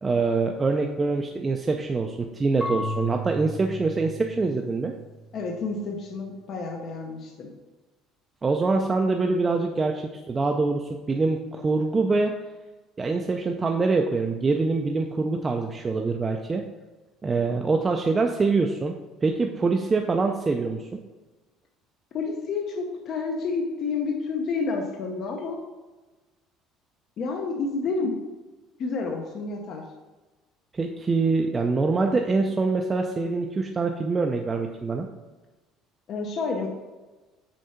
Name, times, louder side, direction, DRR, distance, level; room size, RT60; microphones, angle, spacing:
voice 1, 0.0-4.9 8.4-12.3 13.0-16.6 17.2-18.9 19.2-21.0 30.7-35.1, right 3 dB, 15° right, 3 dB, 0.4 m, -24 dB
Marimba xylophone / Wood, 2.6-5.5, equal, 15° left, 1.1 m, -34 dB
voice 2, 5.3-7.5 22.1-25.6 27.2-28.1 28.8-29.8 36.1-36.7, left 4 dB, 35° left, 1 dB, 0.8 m, -29 dB
6.4 x 4.5 x 5.6 m, 1.2 s
cardioid pair, 175°, 0 cm